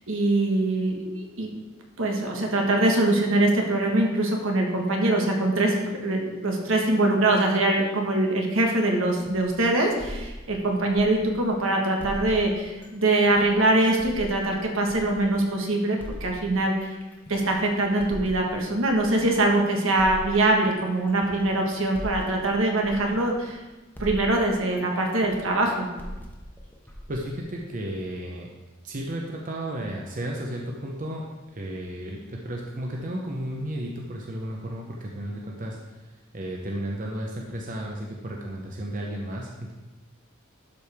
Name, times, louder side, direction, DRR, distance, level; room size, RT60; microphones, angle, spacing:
voice 1, 0.1-1.5 2.0-5.7 6.0-17.0 17.3-23.6 24.0-25.9, right 2 dB, 75° right, 1 dB, 1.4 m, -23 dB
sound 1, 9.1-11.6 12.0-15.5 16.0-19.5 20.0-23.7 24.0-28.0, equal, 10° left, 0.9 m, -41 dB
voice 2, 27.1-28.5 28.8-31.2 31.5-35.8 36.3-39.7, right 1 dB, 40° right, -1 dB, 0.8 m, -33 dB
12.0 x 4.8 x 3.5 m, 1.1 s
head